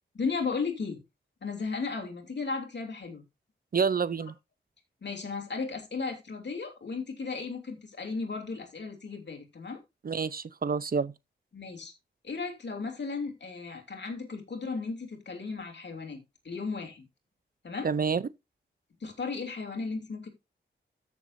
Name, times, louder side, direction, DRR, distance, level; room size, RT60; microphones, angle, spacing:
voice 1, 0.1-1.0 1.4-3.2 5.0-9.8 11.5-11.9 12.2-17.1 17.6-17.9 19.0-20.3, left 4 dB, 60° left, 3.1 m, -35 dB
voice 2, 3.7-4.3 10.0-11.1 17.8-18.2, right 5 dB, 50° right, 0.6 m, -28 dB
14.0 x 7.0 x 2.6 m
wide cardioid pair, 115°, 20 cm